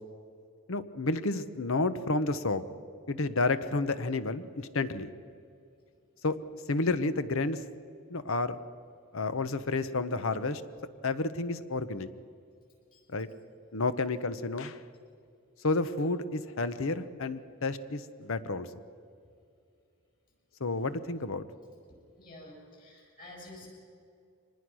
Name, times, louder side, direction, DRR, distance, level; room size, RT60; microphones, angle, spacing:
voice 1, 0.7-2.6 3.1-5.1 6.2-6.4 6.7-7.6 8.1-8.6 9.1-10.6 11.0-12.1 13.1-13.3 13.7-14.8 15.6-18.7 20.6-21.4, left 3 dB, 65° left, 12 dB, 0.9 m, -30 dB
voice 2, 22.2-23.7, left 1 dB, 40° left, -1 dB, 7.2 m, -49 dB
24.5 x 20.0 x 6.3 m, 2.4 s
head